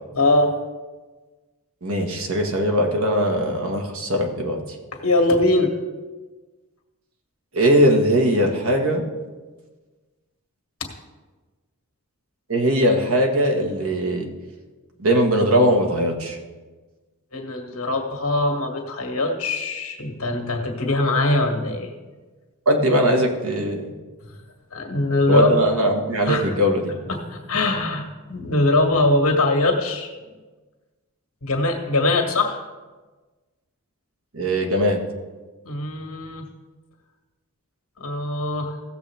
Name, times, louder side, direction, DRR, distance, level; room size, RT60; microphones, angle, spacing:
voice 1, 0.2-0.5 5.0-5.7 17.3-21.9 24.7-25.6 26.3-26.4 27.1-30.1 31.4-32.6 35.7-36.5 38.0-38.7, left 2 dB, 70° left, 2 dB, 1.7 m, -22 dB
voice 2, 1.8-4.6 7.5-9.0 12.5-14.3 15.0-16.4 22.6-23.9 25.3-26.8 34.3-35.0, equal, 70° right, 2 dB, 1.5 m, -20 dB
16.5 x 7.1 x 3.4 m, 1.3 s
head